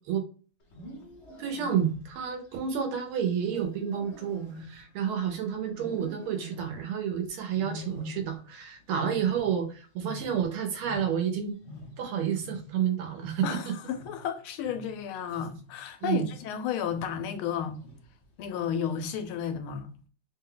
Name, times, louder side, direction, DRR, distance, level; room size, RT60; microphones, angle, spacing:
Wild animals, 0.6-2.3 3.4-5.3 5.7-6.9 7.5-8.6 8.8-11.4 11.6-16.5 16.9-17.3 17.8-18.2 18.9-19.4, equal, 50° left, 0.8 m, -45 dB
voice 1, 1.4-11.6 12.0-13.7 16.0-16.3, right 8 dB, 90° right, 1.7 m, -30 dB
voice 2, 13.4-17.8 18.4-19.9, left 8 dB, 85° left, 1.5 m, -32 dB
3.8 x 2.2 x 3.7 m
omnidirectional pair, 2.3 m